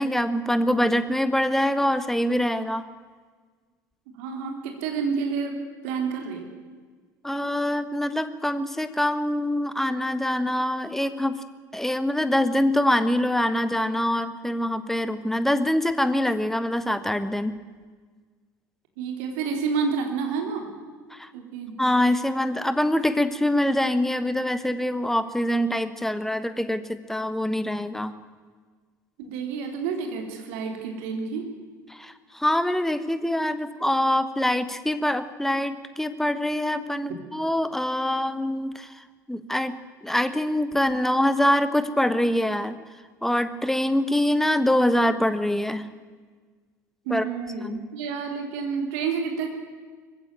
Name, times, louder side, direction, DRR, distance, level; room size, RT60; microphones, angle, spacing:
voice 1, 0.0-2.9 7.2-11.4 11.7-17.6 21.1-21.3 21.8-28.1 31.9-42.8 43.2-45.9 47.1-47.2 47.6-47.8, left 1 dB, 5° left, 12 dB, 1.4 m, -24 dB
voice 2, 4.2-6.5 19.0-20.7 21.3-21.8 29.2-31.6 47.1-49.5, right 5 dB, 60° right, 4 dB, 3.6 m, -29 dB
20.5 x 15.5 x 9.1 m, 1.5 s
figure-of-eight pair, 60°, 9 cm